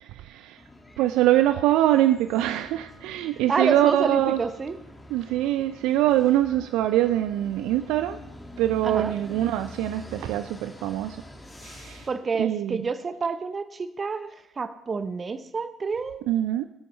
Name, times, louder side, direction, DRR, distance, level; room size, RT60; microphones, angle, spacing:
voice 1, 0.2-0.6 1.0-4.4 5.1-8.2 8.6-11.2 11.6-12.1 12.4-12.8 16.3-16.7, right 13 dB, 70° right, 11 dB, 0.3 m, -23 dB
sound 1, 0.6-12.1, left 1 dB, 15° left, 2.0 m, -45 dB
voice 2, 3.5-4.8 8.8-9.1 12.1-16.2, right 4 dB, 35° right, 11 dB, 0.8 m, -28 dB
20.0 x 8.6 x 3.2 m, 0.88 s
hypercardioid pair, 55°, 0 cm